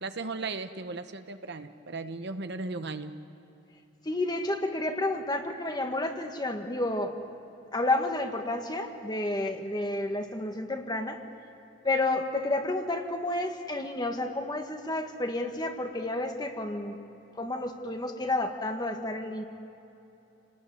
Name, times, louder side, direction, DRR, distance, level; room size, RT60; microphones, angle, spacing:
voice 1, 0.0-3.1, right 3 dB, 60° right, 9 dB, 1.1 m, -36 dB
voice 2, 4.1-7.1 7.7-11.2 11.8-17.0 17.4-19.4, left 2 dB, 20° left, 4 dB, 1.8 m, -30 dB
28.5 x 19.5 x 9.4 m, 2.9 s
head